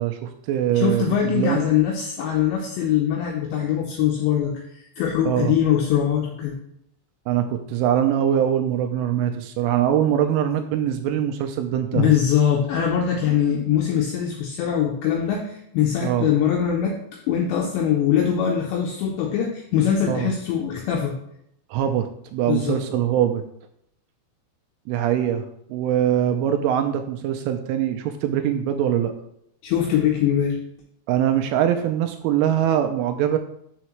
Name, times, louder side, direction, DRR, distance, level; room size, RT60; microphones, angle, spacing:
voice 1, 0.0-1.6 5.3-5.5 7.3-12.1 16.0-16.3 20.1-20.3 21.7-23.4 24.9-29.1 31.1-33.4, right 10 dB, 85° right, 6 dB, 2.8 m, -22 dB
voice 2, 0.7-6.6 11.9-17.0 17.3-21.2 22.5-22.8 29.6-30.6, left 9 dB, 85° left, 1 dB, 2.5 m, -22 dB
7.2 x 6.6 x 3.0 m, 0.73 s
omnidirectional pair, 5.9 m